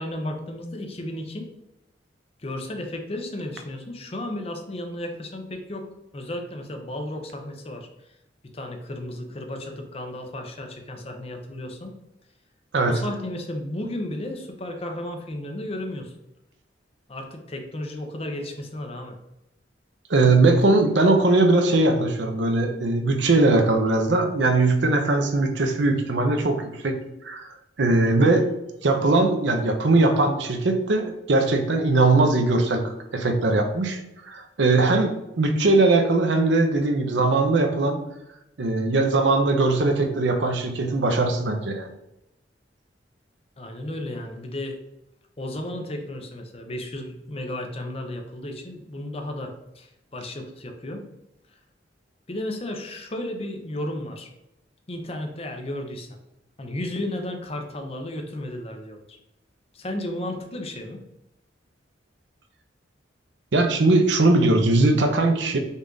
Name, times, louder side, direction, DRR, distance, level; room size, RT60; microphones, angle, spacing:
voice 1, 0.0-1.5 2.4-7.9 8.4-11.9 12.9-16.1 17.1-19.2 43.6-44.8 45.4-51.0 52.3-54.3 54.9-56.2 56.6-59.2 59.7-61.0, left 1 dB, 35° left, 4 dB, 0.6 m, -33 dB
voice 2, 20.1-27.0 27.2-27.5 27.8-28.5 28.8-38.0 38.6-41.9 63.5-65.6, right 2 dB, 75° right, 5 dB, 0.6 m, -20 dB
5.4 x 2.5 x 3.8 m, 0.87 s
head